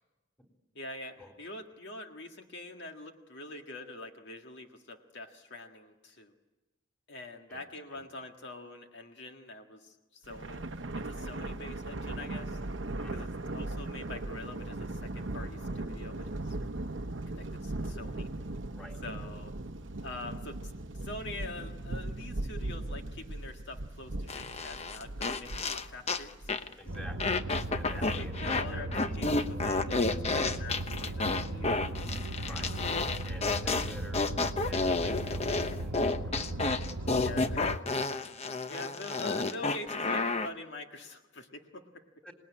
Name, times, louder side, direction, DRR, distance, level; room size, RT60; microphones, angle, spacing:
voice 1, 0.8-6.3 7.1-10.7 11.0-12.6 13.1-16.6 17.3-18.3 19.0-19.6 20.0-26.7 28.1-32.0 37.1-38.1 38.4-42.1, left 2 dB, 60° left, 4 dB, 1.8 m, -45 dB
Thunder, 10.2-26.8, right 2 dB, 65° right, 0.9 m, -38 dB
sound 1, 24.3-26.2 26.5-26.7 27.2-28.7 28.9-40.5, left 3 dB, 35° left, 0.9 m, -31 dB
voice 2, 26.8-27.5 27.7-29.2 32.5-32.8 33.2-34.2 34.6-36.3 37.0-37.2 42.2-42.3, left 1 dB, 5° left, 2 dB, 3.6 m, -48 dB
sound 2, 26.9-37.8, right 2 dB, 80° right, 1.2 m, -37 dB
26.5 x 20.0 x 9.7 m, 1.1 s
head